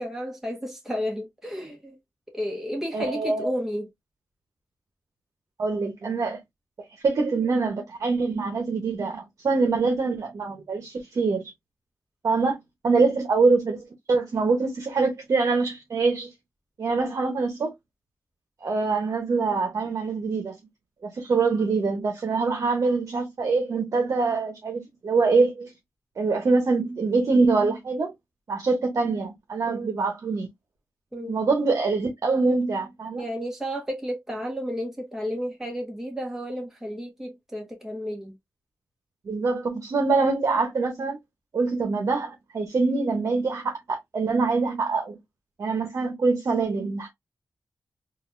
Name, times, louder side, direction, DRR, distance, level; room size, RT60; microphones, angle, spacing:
voice 1, 0.0-2.0 2.3-3.9 12.9-13.0 29.7-29.9 31.1-31.3 33.2-38.3, equal, 5° right, 1.4 m, -32 dB
voice 2, 2.9-3.5 5.6-6.4 7.0-11.4 12.2-12.6 12.8-13.8 14.1-16.3 16.8-17.7 18.6-20.5 21.0-25.7 26.2-28.1 28.5-30.5 31.3-33.2 39.3-41.2 41.5-45.2 45.6-47.1, right 4 dB, 65° right, 1.0 m, -24 dB
4.0 x 2.6 x 2.6 m
wide cardioid pair, 90°, 6 cm